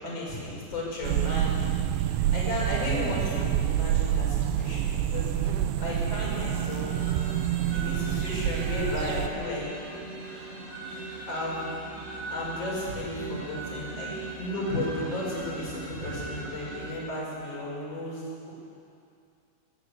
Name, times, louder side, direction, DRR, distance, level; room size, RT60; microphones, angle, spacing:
voice 1, 0.0-1.7 2.3-4.9 5.1-6.9 7.7-9.7 11.3-11.6 12.3-14.1 14.4-18.5, left 1 dB, 30° left, -4 dB, 6.5 m, -34 dB
sound 1, 1.0-9.3, right 11 dB, 85° right, 2.4 m, -27 dB
sound 2, 6.1-17.0, right 2 dB, 55° right, 7.9 m, -39 dB
25.5 x 13.5 x 8.3 m, 2.5 s
omnidirectional pair, 5.9 m